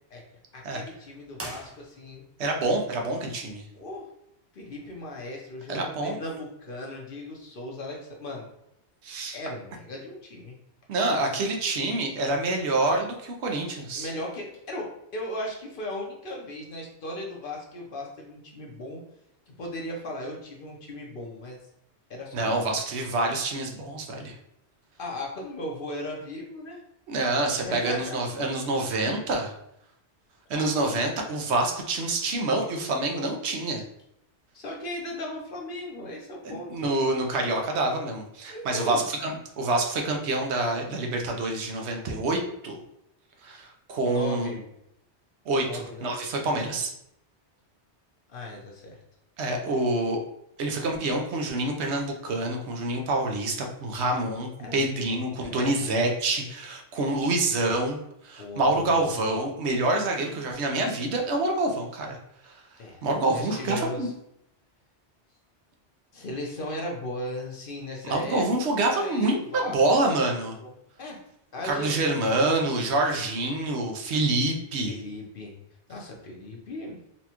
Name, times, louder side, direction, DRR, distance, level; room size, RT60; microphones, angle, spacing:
voice 1, 0.5-2.2 3.7-4.0 4.5-8.5 9.3-10.6 13.9-19.0 19.5-21.6 22.1-22.8 25.0-26.8 27.7-28.2 30.5-31.0 34.5-36.9 38.5-39.0 44.1-44.6 45.6-46.2 48.3-49.0 54.6-55.2 55.5-55.9 58.4-59.1 62.8-63.0 63.3-64.1 66.1-68.5 68.8-70.1 70.6-70.7 71.0-71.2 71.5-72.0 74.9-75.5 75.9-77.0, left 1 dB, 55° left, -1 dB, 0.8 m, -37 dB
sound 1, 1.3-2.4, right 1 dB, 25° right, 0.3 m, -41 dB
voice 2, 2.4-3.6 5.7-6.2 9.0-9.4 10.9-14.1 22.3-24.3 27.1-29.5 30.5-33.8 36.4-42.8 43.4-44.5 45.5-46.9 49.4-50.2 50.6-62.2 62.5-62.6 63.0-64.1 68.0-70.6 71.6-75.0, right 2 dB, 75° right, 2 dB, 0.9 m, -27 dB
4.2 x 2.3 x 2.8 m, 0.77 s
omnidirectional pair, 1.2 m